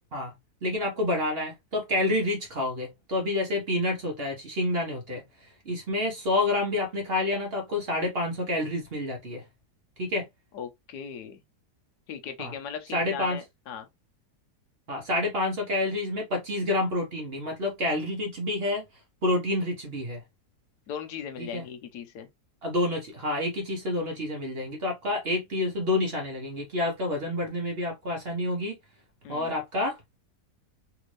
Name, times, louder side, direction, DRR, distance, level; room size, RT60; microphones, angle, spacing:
voice 1, 0.6-9.4 10.0-10.3 12.4-12.5 12.9-13.4 14.9-18.8 19.2-20.2 21.4-21.6 22.6-28.8 29.3-30.0, left 2 dB, 45° right, 0.9 m, -28 dB
voice 2, 10.5-11.4 12.1-13.9 20.9-22.3 29.2-29.6, left 7 dB, 80° left, 1.3 m, -38 dB
3.5 x 2.5 x 3.1 m
omnidirectional pair, 1.7 m